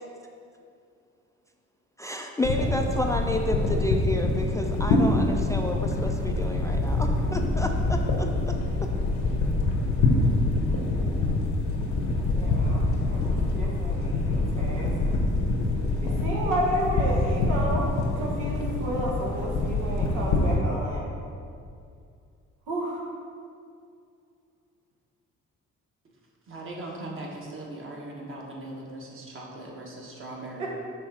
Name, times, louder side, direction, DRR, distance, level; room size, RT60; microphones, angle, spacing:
voice 1, 2.0-8.9, left 1 dB, 10° left, 3 dB, 0.3 m, -31 dB
sound 1, 2.4-20.6, left 2 dB, 85° left, 1.0 m, -25 dB
voice 2, 12.1-14.9 16.0-17.9 18.2-21.1 22.7-23.0 30.6-30.7, right 1 dB, 90° right, -3 dB, 1.3 m, -31 dB
voice 3, 26.5-30.7, right 2 dB, 45° right, -2 dB, 1.3 m, -39 dB
6.3 x 3.4 x 4.8 m, 2.4 s
cardioid pair, 90°, 30 cm